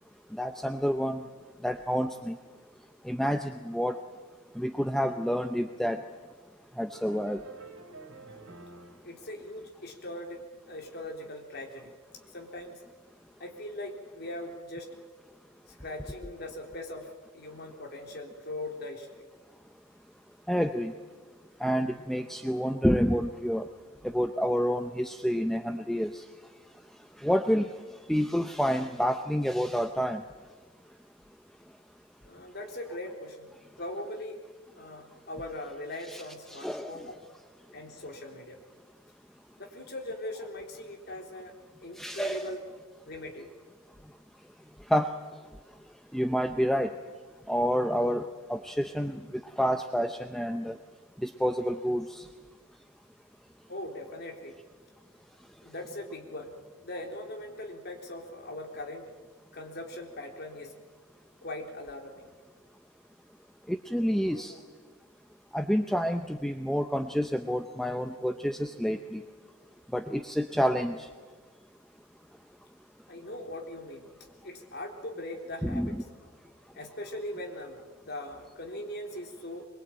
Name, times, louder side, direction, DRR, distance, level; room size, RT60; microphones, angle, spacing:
voice 1, 0.3-1.3 1.6-2.4 3.0-4.0 4.6-6.0 6.8-7.4 20.5-20.9 21.6-23.7 24.0-26.2 27.2-27.7 28.1-30.2 36.1-36.2 36.5-37.1 42.0-42.5 44.9-45.1 46.1-46.9 47.5-50.8 51.2-52.3 63.7-64.5 65.5-69.2 69.9-71.1 75.6-76.0, equal, ahead, 6 dB, 0.7 m, -28 dB
sound 1, 6.9-9.1, right 3 dB, 80° right, 3.3 m, -48 dB
voice 2, 9.0-11.9 12.3-12.8 13.4-14.9 15.7-19.1 32.2-33.5 33.8-34.4 34.8-37.2 37.7-38.6 39.6-41.5 41.8-42.6 43.1-43.5 53.7-54.5 55.6-56.5 56.8-59.1 59.5-60.7 61.4-62.3 64.3-64.6 73.1-74.1 74.4-76.0 76.7-79.7, left 1 dB, 50° left, 2 dB, 3.8 m, -40 dB
23.0 x 22.5 x 8.9 m, 1.4 s
head